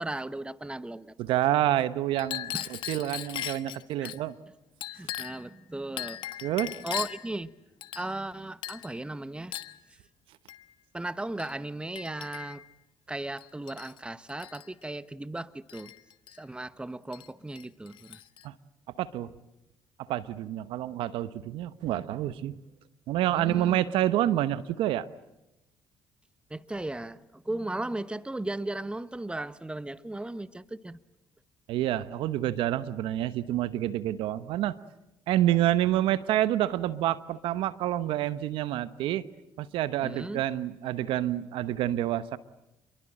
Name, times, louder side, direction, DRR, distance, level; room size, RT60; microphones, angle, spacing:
voice 1, 0.0-1.1 2.5-2.7 4.0-4.1 4.9-6.5 6.8-7.5 7.9-9.5 10.9-12.7 13.1-15.9 16.4-18.2 23.3-23.8 26.5-31.0 40.0-40.4, right 2 dB, 10° right, 1.2 m, -36 dB
voice 2, 1.2-4.3 6.4-6.7 18.4-18.5 19.0-19.3 20.1-22.6 23.1-25.1 31.7-34.8 35.3-39.2 39.6-42.4, right 13 dB, 75° right, 1.0 m, -28 dB
Chink clink, 2.1-4.2 4.8-5.5 6.0-7.3 7.8-8.3 8.6-8.9 9.5-9.8 10.5-10.6 11.4-11.5 11.9-12.7 13.4-14.0 14.3-14.7 15.7-16.4 17.1-17.3 17.6-18.4, left 13 dB, 65° left, 1.3 m, -38 dB
28.5 x 23.0 x 8.9 m
supercardioid pair, 60°, 9 cm